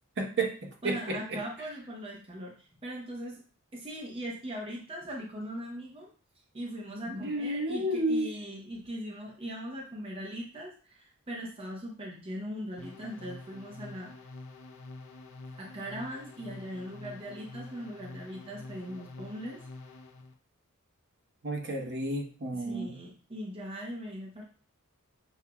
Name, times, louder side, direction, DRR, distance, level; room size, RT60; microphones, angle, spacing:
voice 1, 0.2-1.4 7.1-8.3 21.4-22.9, right 1 dB, 55° right, 0 dB, 0.9 m, -31 dB
voice 2, 0.8-3.4 3.7-6.1 6.5-14.1 15.5-19.6 22.5-24.4, equal, 25° right, -3 dB, 0.8 m, -40 dB
sound 1, 12.8-20.3, left 3 dB, 65° left, 0.6 m, -47 dB
6.7 x 2.7 x 2.2 m, 0.40 s
head